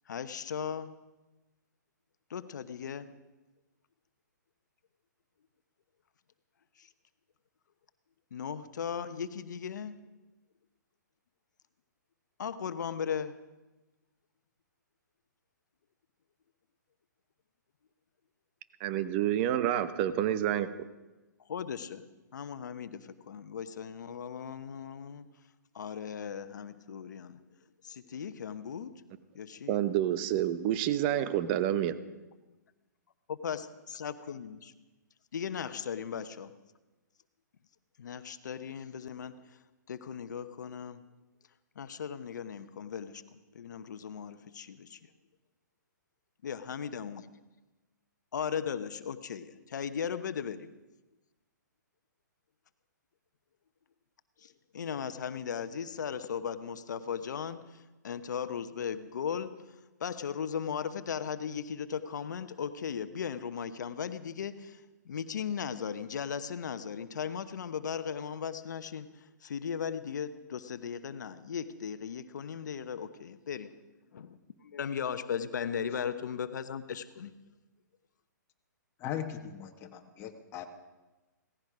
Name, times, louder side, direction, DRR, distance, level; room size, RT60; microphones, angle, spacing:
voice 1, 0.1-0.9 2.3-3.1 6.8-6.9 8.3-10.1 12.4-13.4 21.5-22.0 22.3-25.3 25.7-27.4 27.8-29.0 29.3-29.8 33.4-34.7 35.3-36.5 38.0-39.6 39.9-41.0 41.8-45.0 46.4-47.3 48.3-50.7 54.4-73.7 74.1-77.3, left 7 dB, 65° left, 11 dB, 1.1 m, -37 dB
voice 2, 18.8-20.7 29.7-32.0, right 11 dB, 35° right, 12 dB, 1.0 m, -28 dB
voice 3, 79.0-80.7, left 9 dB, 25° left, 2 dB, 1.5 m, -39 dB
17.0 x 16.0 x 5.0 m, 1.1 s
hypercardioid pair, 135°, 10 cm